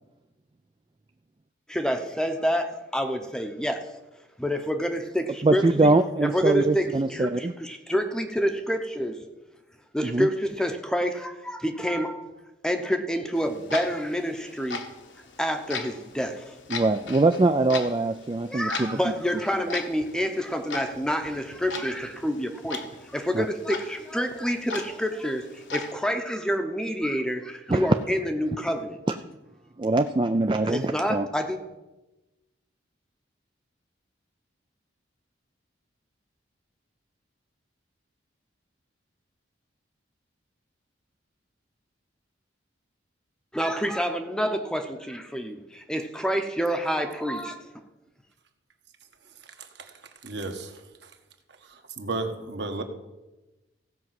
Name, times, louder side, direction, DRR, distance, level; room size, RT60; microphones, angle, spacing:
voice 1, 1.7-3.8 4.4-5.9 6.2-9.2 9.9-12.3 12.6-14.8 15.4-16.6 18.5-29.0 30.6-31.6 43.5-47.7, equal, 5° left, 6 dB, 0.8 m, -28 dB
voice 2, 5.4-7.5 10.0-10.3 16.7-19.0 23.3-23.5 27.7-27.9 29.1-29.2 29.8-31.3, right 2 dB, 25° right, 7 dB, 0.3 m, -23 dB
Clock, 13.3-25.9, left 3 dB, 70° left, 1.4 m, -39 dB
voice 3, 50.2-50.7 52.0-52.8, right 3 dB, 60° right, 5 dB, 1.4 m, -32 dB
16.0 x 5.3 x 7.6 m, 1.1 s
head